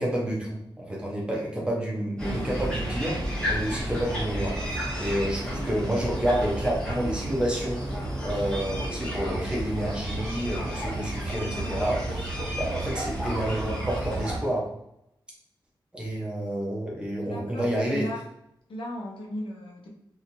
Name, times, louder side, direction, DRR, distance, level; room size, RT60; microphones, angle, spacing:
voice 1, 0.0-7.8 8.2-14.7 15.9-18.1, right 1 dB, 10° right, -3 dB, 0.8 m, -29 dB
sound 1, 2.2-14.4, right 1 dB, 10° left, 1.1 m, -31 dB
voice 2, 17.2-18.2 18.7-19.9, equal, 85° left, -2 dB, 0.9 m, -36 dB
3.0 x 2.8 x 2.6 m, 0.80 s
wide cardioid pair, 145°, 9 cm